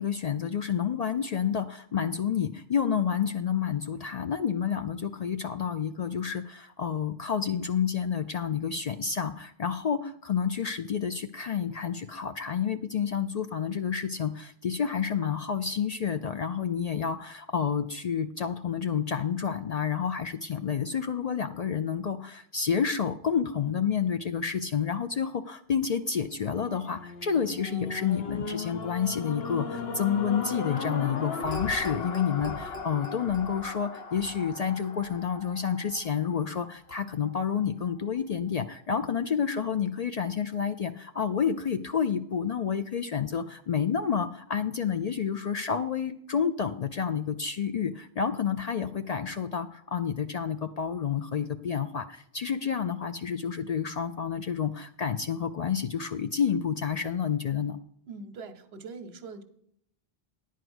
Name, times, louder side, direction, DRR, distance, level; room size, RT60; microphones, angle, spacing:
voice 1, 0.0-57.8, left 7 dB, 55° left, 8 dB, 0.5 m, -29 dB
sound 1, 26.4-36.7 37.3-37.4, left 4 dB, 75° left, 1.2 m, -37 dB
voice 2, 58.1-59.4, right 4 dB, 80° right, 10 dB, 1.1 m, -42 dB
10.5 x 4.7 x 7.9 m, 0.70 s
omnidirectional pair, 1.0 m